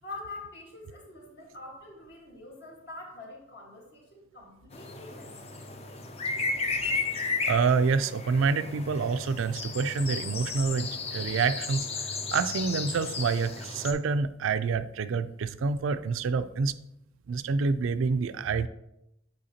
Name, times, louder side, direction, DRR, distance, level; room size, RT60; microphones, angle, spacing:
voice 1, 0.0-5.3, left 2 dB, 55° left, -1 dB, 1.6 m, -45 dB
sound 1, 4.7-13.9, left 4 dB, 30° left, 0.5 m, -34 dB
voice 2, 7.5-16.7 17.3-18.7, right 5 dB, 80° right, 12 dB, 0.4 m, -27 dB
7.7 x 4.4 x 2.8 m, 0.84 s
head